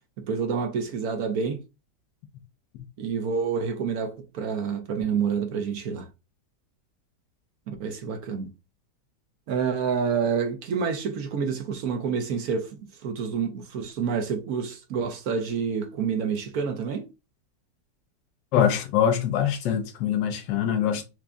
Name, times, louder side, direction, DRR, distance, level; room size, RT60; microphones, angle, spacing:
voice 1, 0.2-1.6 3.0-6.1 7.7-8.5 9.5-17.1, right 6 dB, 65° right, 1.1 m, -28 dB
voice 2, 18.5-21.0, left 9 dB, 80° left, 1.3 m, -23 dB
5.9 x 2.6 x 2.2 m
omnidirectional pair, 1.9 m